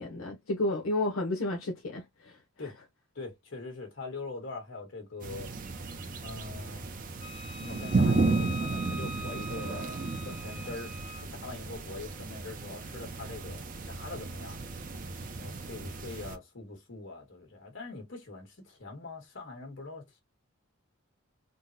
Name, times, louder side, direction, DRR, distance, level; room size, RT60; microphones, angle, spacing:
voice 1, 0.0-2.3, left 2 dB, 85° left, 0.8 m, -31 dB
voice 2, 3.1-5.5 6.2-6.9 7.6-10.9 11.2-14.6 15.4-20.1, left 3 dB, 60° left, 1.4 m, -43 dB
sound 1, 5.2-16.4, right 3 dB, 40° right, 0.5 m, -33 dB
Wind instrument woodwind instrument, 7.2-11.2, left 1 dB, 30° left, 1.1 m, -43 dB
3.7 x 2.1 x 2.6 m
head